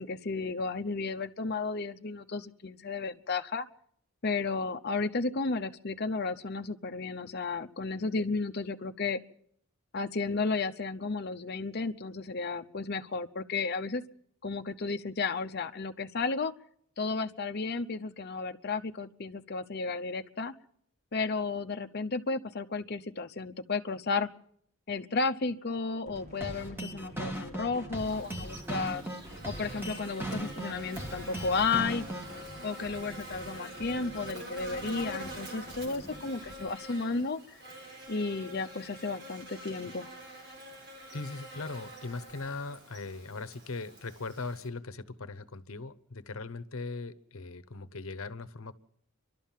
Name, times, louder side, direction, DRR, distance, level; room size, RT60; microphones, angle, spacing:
voice 1, 0.0-3.7 4.2-9.2 9.9-14.0 14.4-16.5 17.0-20.5 21.1-24.3 24.9-29.0 29.5-32.1 32.6-37.4 38.1-40.1, left 4 dB, 45° left, 7 dB, 0.7 m, -33 dB
sound 1, 26.1-36.7, equal, 30° right, 1.5 m, -49 dB
sound 2, 26.4-32.4, right 1 dB, 10° right, 1.8 m, -38 dB
Buzz, 28.0-44.7, right 1 dB, 50° right, 4.0 m, -46 dB
voice 2, 41.1-48.7, left 3 dB, 70° left, 13 dB, 0.9 m, -39 dB
30.0 x 12.5 x 7.4 m, 0.66 s
head